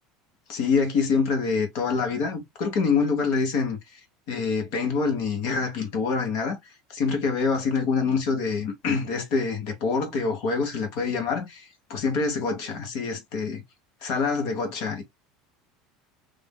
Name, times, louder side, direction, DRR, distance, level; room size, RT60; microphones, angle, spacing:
voice 1, 0.5-3.8 4.3-6.6 6.9-13.6 14.0-15.0, left 5 dB, 65° left, 1.2 m, -26 dB
3.4 x 2.5 x 2.2 m
supercardioid pair, 120°, 0 cm